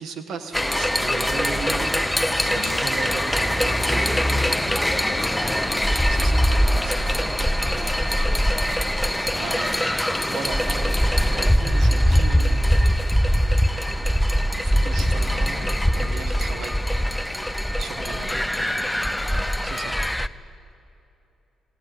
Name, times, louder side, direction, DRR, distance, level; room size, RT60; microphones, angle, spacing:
voice 1, 0.0-1.9 2.4-4.4 6.1-6.4 6.7-8.1 9.3-9.9 10.3-11.0 11.3-12.7 14.6-15.7 15.9-16.8 17.8-18.4 19.6-20.0, right 5 dB, 70° right, 8 dB, 1.8 m, -36 dB
sound 1, 0.5-20.3, equal, 5° left, 0.7 m, -22 dB
sound 2, 1.2-19.2, equal, 15° right, 4.9 m, -39 dB
voice 2, 2.5-2.8 5.1-5.8 18.6-19.6, left 9 dB, 80° left, 1 dB, 1.3 m, -43 dB
21.5 x 18.0 x 9.6 m, 2.8 s
cardioid pair, 90°, 0 cm